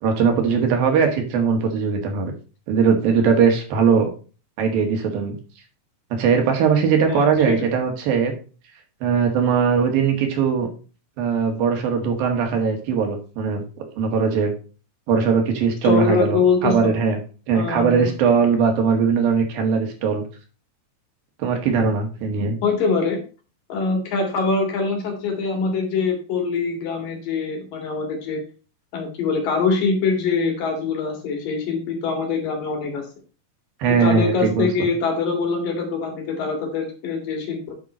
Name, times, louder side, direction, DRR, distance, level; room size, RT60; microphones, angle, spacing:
voice 1, 0.0-2.3 2.7-4.1 4.6-5.3 6.2-8.3 9.0-10.7 11.2-13.6 14.0-14.5 15.1-17.2 17.5-20.2 21.4-22.6 33.8-34.7, right 6 dB, 70° right, 4 dB, 3.3 m, -20 dB
voice 2, 15.8-16.9 17.5-18.1 22.6-23.2 23.7-28.4 28.9-33.0 34.0-37.7, left 4 dB, 65° left, 3 dB, 3.7 m, -23 dB
9.2 x 5.7 x 4.3 m, 0.35 s
omnidirectional pair, 4.3 m